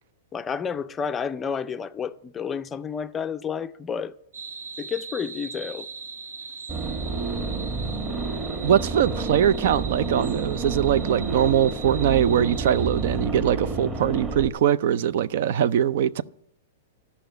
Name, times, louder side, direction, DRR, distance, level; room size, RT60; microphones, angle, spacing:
voice 1, 0.3-4.1 4.8-5.9, left 6 dB, 15° left, 0.4 m, -30 dB
sound 1, 4.3-13.2, right 5 dB, 90° right, 1.3 m, -40 dB
sound 2, 6.7-14.5, right 4 dB, 20° right, 1.6 m, -30 dB
voice 2, 8.6-16.2, right 9 dB, 60° right, 0.4 m, -22 dB
12.5 x 5.7 x 9.0 m
hypercardioid pair, 145°, 0 cm